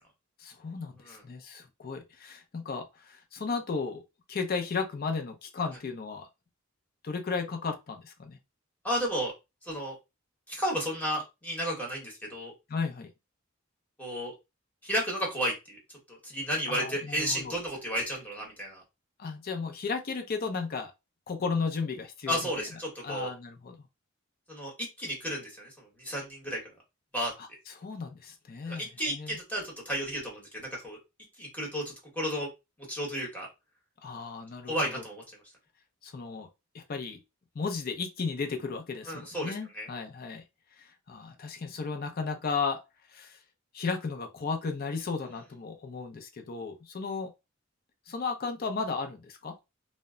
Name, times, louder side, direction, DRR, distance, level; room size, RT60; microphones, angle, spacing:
voice 1, 0.4-4.0 4.3-6.3 7.0-8.4 12.7-13.1 16.7-17.5 19.2-20.9 21.3-22.7 23.0-23.8 27.4-29.4 34.0-35.0 36.0-36.5 36.7-37.2 37.5-40.4 40.8-42.8 43.1-43.4 43.7-47.3 48.1-49.6, left 4 dB, 45° left, 0.4 m, -34 dB
voice 2, 8.8-9.3 9.6-9.9 10.5-12.5 14.0-14.3 14.8-15.8 16.1-18.8 22.3-23.3 24.5-24.7 25.0-25.7 26.0-26.6 27.1-27.3 28.6-31.0 31.4-32.5 32.9-33.5 34.7-35.2 39.1-39.9, equal, 10° left, 1.0 m, -33 dB
2.1 x 2.0 x 3.5 m
head